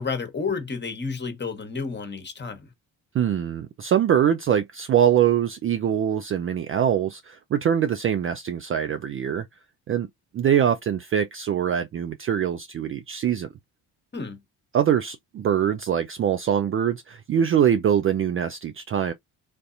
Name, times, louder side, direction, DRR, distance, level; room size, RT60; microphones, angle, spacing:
voice 1, 0.0-2.7 14.1-14.4, left 4 dB, 25° left, 1.2 m, -31 dB
voice 2, 3.1-9.5 9.9-10.1 10.3-13.5 14.7-19.1, right 9 dB, 30° right, 0.4 m, -23 dB
3.6 x 2.6 x 2.5 m
hypercardioid pair, 50°, 44 cm